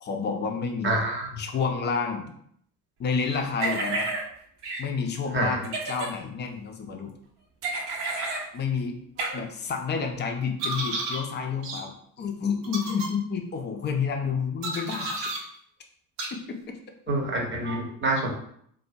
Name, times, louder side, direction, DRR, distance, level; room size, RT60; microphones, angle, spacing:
voice 1, 0.0-1.0 1.4-2.3 3.0-4.1 4.8-7.1 8.5-9.0 9.3-15.2 16.3-16.6, left 6 dB, 25° left, 4 dB, 0.3 m, -29 dB
voice 2, 0.8-1.3 5.3-5.6 9.2-9.4 17.1-18.3, right 2 dB, 25° right, 0 dB, 0.7 m, -27 dB
sound 1, 3.6-4.2 4.6-4.8 5.6-6.1 7.6-8.4 9.2-9.3 10.6-11.2 11.6-11.8 12.6-13.1 14.6-15.4 16.2-16.3, right 2 dB, 60° right, 0.7 m, -30 dB
2.3 x 2.1 x 2.5 m, 0.67 s
hypercardioid pair, 55°, 48 cm